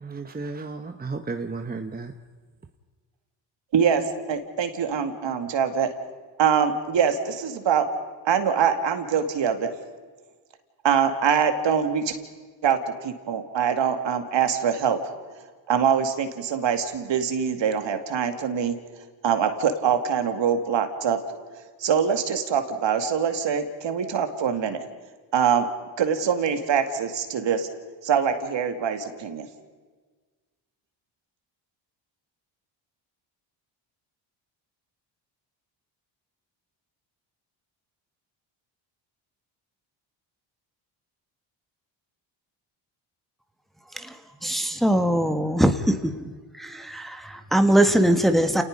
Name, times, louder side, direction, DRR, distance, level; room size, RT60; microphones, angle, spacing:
voice 1, 0.0-2.1, right 3 dB, 20° right, 6 dB, 1.2 m, -33 dB
voice 2, 3.7-4.0 4.3-5.9 6.4-7.9 8.2-9.7 10.8-12.2 12.6-15.0 15.7-18.7 19.2-21.2 21.8-24.8 25.3-25.7 26.0-27.7 28.0-29.5, right 7 dB, 60° right, 7 dB, 2.4 m, -24 dB
voice 3, 44.4-46.3 46.6-48.6, right 1 dB, ahead, 6 dB, 1.6 m, -21 dB
29.5 x 19.0 x 5.3 m, 1.4 s
cardioid pair, 75°, 49 cm